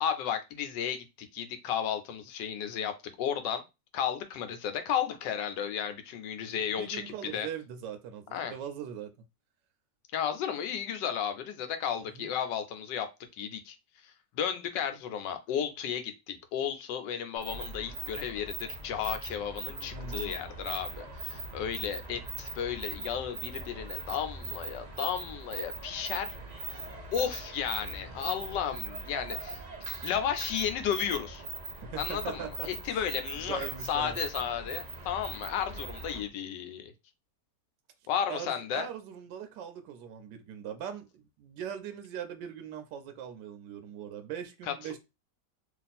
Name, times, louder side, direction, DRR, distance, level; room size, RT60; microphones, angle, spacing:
voice 1, 0.0-3.6 3.9-7.5 8.3-8.5 10.1-13.1 13.4-13.8 14.3-26.3 27.1-29.6 30.0-31.4 32.0-36.9 38.1-38.9 44.7-45.0, left 8 dB, 90° left, 1.3 m, -33 dB
voice 2, 6.6-9.1 12.0-12.3 19.8-20.4 31.8-33.0 33.3-34.2 38.3-45.0, right 8 dB, 90° right, 1.3 m, -41 dB
sound 1, 17.4-36.3, right 3 dB, 65° right, 0.4 m, -41 dB
3.2 x 2.4 x 4.1 m
omnidirectional pair, 1.9 m